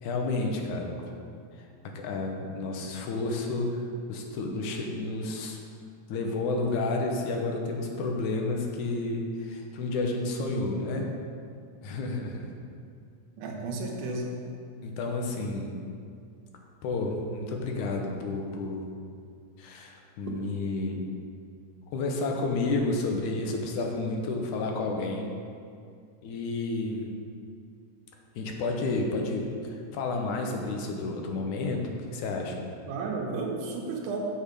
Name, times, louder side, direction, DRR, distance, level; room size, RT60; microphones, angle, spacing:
voice 1, 0.0-0.9 1.6-1.7 1.9-3.8 4.1-5.6 6.1-11.1 11.8-12.5 14.8-15.7 16.8-18.9 19.6-21.1 21.9-25.3 26.2-27.1 28.4-32.6, left 3 dB, 80° left, 2 dB, 2.3 m, -31 dB
voice 2, 13.4-14.4 32.9-34.3, right 3 dB, 90° right, 0 dB, 2.6 m, -33 dB
7.3 x 7.0 x 5.3 m, 2.3 s
omnidirectional pair, 3.5 m